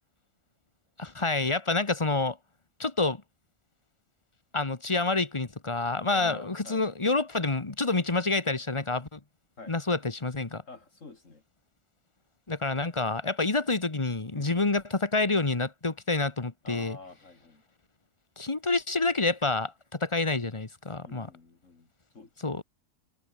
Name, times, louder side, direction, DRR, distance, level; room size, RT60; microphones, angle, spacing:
voice 1, 1.0-2.4 2.8-3.2 4.5-9.2 9.7-10.6 12.5-17.0 18.4-21.3 22.4-22.6, left 3 dB, 20° left, 1.4 m, -28 dB
voice 2, 6.1-6.9 9.6-9.7 10.7-11.4 14.3-14.7 16.6-17.6 21.0-21.9 22.1-22.6, left 3 dB, 65° left, 3.2 m, -47 dB
omnidirectional pair, 1.4 m